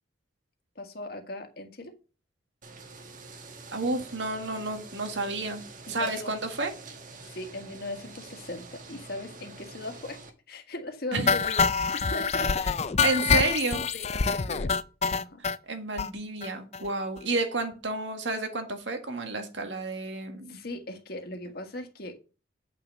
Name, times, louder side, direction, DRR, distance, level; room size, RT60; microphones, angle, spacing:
voice 1, 0.7-1.9 5.9-6.3 7.3-10.2 10.5-12.8 13.1-13.4 13.9-14.7 15.1-15.4 20.5-22.2, left 2 dB, 55° left, 5 dB, 1.7 m, -38 dB
sound 1, 2.6-10.3, right 3 dB, 45° right, 1.5 m, -46 dB
voice 2, 3.7-5.6 5.9-6.7 11.1-11.3 13.0-13.8 15.7-20.6, right 3 dB, 80° right, 5 dB, 1.9 m, -30 dB
sound 2, 11.3-15.6 16.0-16.1 16.4-16.5 16.7-16.9 17.2-17.3, left 5 dB, 35° left, 0.5 m, -26 dB
8.7 x 5.8 x 5.4 m, 0.34 s
head